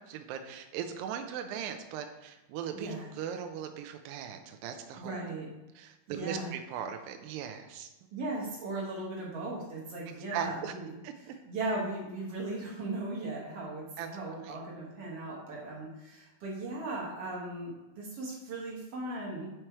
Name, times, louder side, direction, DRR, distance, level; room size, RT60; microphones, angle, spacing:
voice 1, 0.1-5.2 5.8-7.9 10.1-10.7 11.0-11.1 14.0-14.1 14.4-14.6, right 8 dB, 80° right, 6 dB, 2.1 m, -39 dB
voice 2, 5.0-5.5 6.1-6.5 8.1-10.9 11.2-19.5, right 2 dB, 60° right, -4 dB, 1.7 m, -37 dB
7.7 x 4.5 x 4.5 m, 1.0 s
omnidirectional pair, 4.5 m